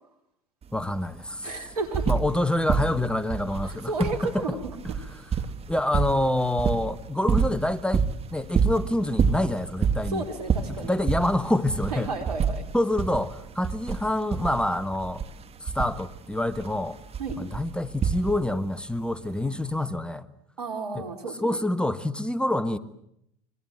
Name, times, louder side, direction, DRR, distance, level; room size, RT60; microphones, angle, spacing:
sound 1, 0.6-0.7 1.0-2.4 2.7-18.6 19.7-19.8, right 6 dB, 30° right, 2.5 m, -28 dB
voice 1, 0.7-1.5 2.1-4.6 5.1-5.3 5.7-10.2 10.7-12.1 12.7-15.2 15.6-17.0 17.4-20.3 20.9-21.1 21.4-22.8, left 1 dB, 5° left, 1.5 m, -27 dB
voice 2, 1.4-2.1 3.6-4.7 10.1-11.0 11.9-12.6 17.2-17.4 20.6-21.6, right 3 dB, 85° right, 4.3 m, -32 dB
26.5 x 24.0 x 7.8 m
hypercardioid pair, 75°, 19 cm